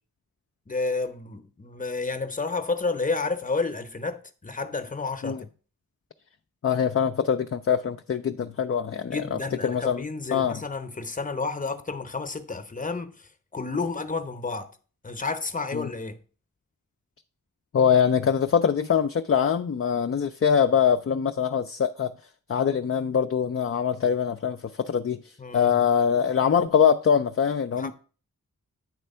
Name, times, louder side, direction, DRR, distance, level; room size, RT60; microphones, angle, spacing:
voice 1, 0.7-5.5 9.1-14.7 15.0-16.2 25.4-25.9 27.7-27.9, left 3 dB, 25° left, 0.8 m, -31 dB
voice 2, 6.6-10.0 10.3-10.6 15.7-15.9 17.7-22.1 22.5-27.9, left 7 dB, 40° left, 0.4 m, -23 dB
9.0 x 3.3 x 5.4 m
wide cardioid pair, 55°, 34 cm